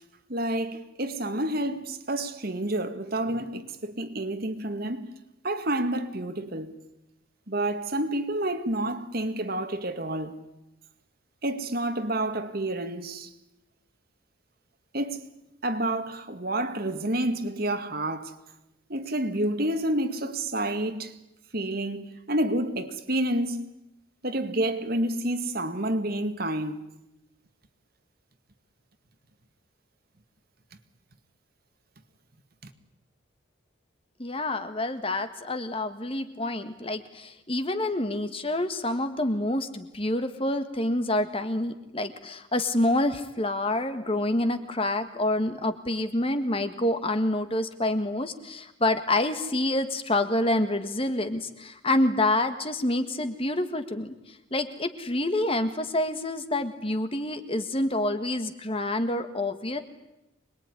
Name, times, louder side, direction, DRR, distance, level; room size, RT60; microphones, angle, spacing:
voice 1, 0.3-5.1 5.4-6.8 7.5-10.4 11.4-13.3 14.9-15.3 15.6-18.4 18.9-21.2 21.5-23.7 24.2-26.8 32.6-32.7, right 1 dB, 45° right, 2.0 m, -29 dB
voice 2, 34.2-54.1 54.5-59.8, left 1 dB, 25° left, 1.7 m, -27 dB
26.0 x 21.0 x 9.9 m
head